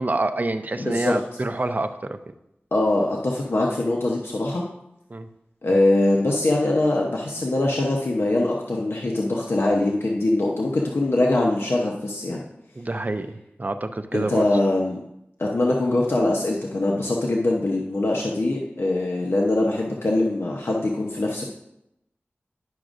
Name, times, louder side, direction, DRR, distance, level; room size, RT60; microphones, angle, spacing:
voice 1, 0.0-2.2 5.1-5.3 5.7-5.9 12.8-14.4, right 2 dB, 40° right, 9 dB, 0.5 m, -27 dB
voice 2, 0.8-1.2 2.7-4.6 5.6-12.4 14.1-15.0 15.4-21.4, left 2 dB, 70° left, -1 dB, 0.8 m, -22 dB
10.5 x 6.1 x 2.5 m, 0.84 s
wide cardioid pair, 55°, 4 cm